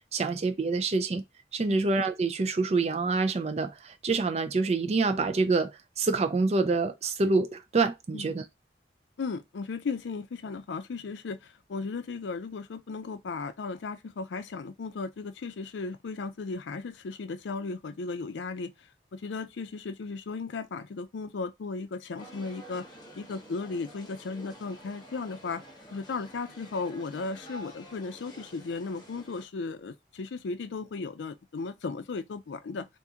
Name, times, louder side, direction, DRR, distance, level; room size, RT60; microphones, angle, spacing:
voice 1, 0.1-1.2 1.5-8.4, right 3 dB, 35° right, 0.4 m, -26 dB
voice 2, 9.2-18.7 19.1-22.9 23.2-25.6 25.9-32.9, left 4 dB, 85° left, 0.4 m, -36 dB
sound 1, 22.2-29.5, equal, 25° left, 1.0 m, -49 dB
2.9 x 2.5 x 3.6 m
head